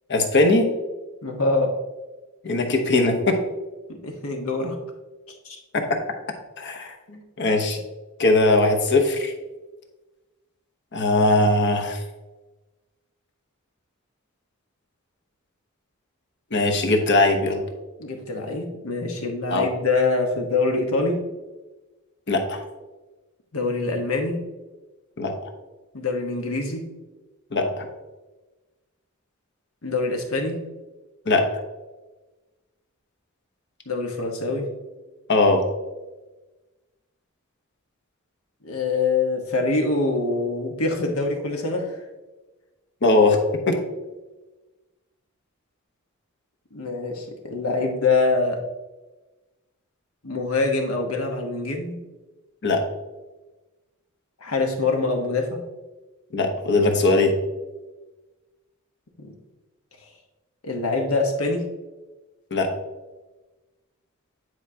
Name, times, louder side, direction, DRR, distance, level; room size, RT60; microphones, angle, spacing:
voice 1, 0.1-0.7 2.4-3.4 5.7-6.0 6.6-6.9 7.4-7.8 8.2-9.3 10.9-12.0 16.5-17.6 19.5-19.7 22.3-22.6 25.2-25.3 27.5-27.9 31.3-31.5 35.3-35.6 43.0-43.4 43.7-43.8 52.6-52.8 56.3-57.3 62.5-62.7, left 2 dB, 55° left, 4 dB, 1.0 m, -20 dB
voice 2, 1.2-1.7 3.9-4.8 5.4-5.6 7.1-7.2 18.0-21.2 23.5-24.4 25.9-26.8 29.8-30.6 33.9-34.7 38.6-42.0 46.7-48.6 50.2-52.0 54.4-55.6 59.2-59.3 60.6-61.6, left 3 dB, 75° left, 3 dB, 1.2 m, -24 dB
9.8 x 4.7 x 2.8 m, 1.2 s
head